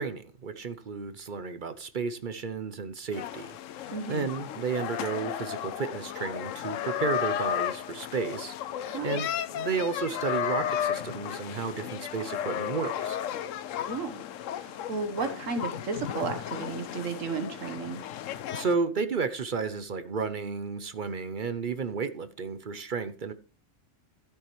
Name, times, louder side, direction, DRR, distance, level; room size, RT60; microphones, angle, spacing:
voice 1, 0.0-3.5 4.1-8.5 9.0-9.3 9.5-13.2 18.5-23.3, right 5 dB, 50° right, 0.7 m, -32 dB
sound 1, 3.1-18.8, left 10 dB, 80° left, 1.0 m, -34 dB
voice 2, 3.9-4.3 8.9-9.2 13.8-14.2 14.6-18.0, right 4 dB, 80° right, 1.5 m, -33 dB
13.5 x 8.1 x 3.1 m
omnidirectional pair, 1.3 m